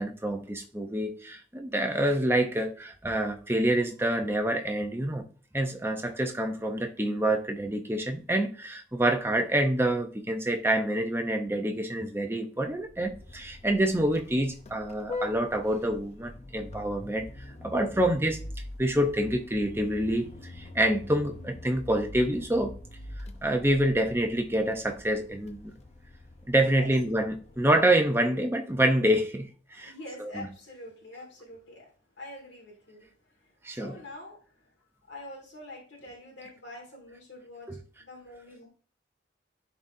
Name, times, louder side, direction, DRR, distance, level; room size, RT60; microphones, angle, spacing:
voice 1, 0.0-5.2 5.5-17.3 17.6-18.4 18.8-20.3 20.6-22.7 23.4-25.7 26.5-29.9 30.2-30.5 33.6-34.0 37.7-37.8, right 1 dB, 10° right, 0.6 m, -27 dB
Vehicle horn car horn honking, 12.7-28.1, left 2 dB, 35° left, 0.6 m, -44 dB
voice 2, 26.6-26.9 29.8-31.9 32.2-33.1 33.3-34.7 35.1-37.7 38.0-38.7, left 1 dB, 75° left, 1.9 m, -45 dB
11.0 x 4.1 x 2.6 m
head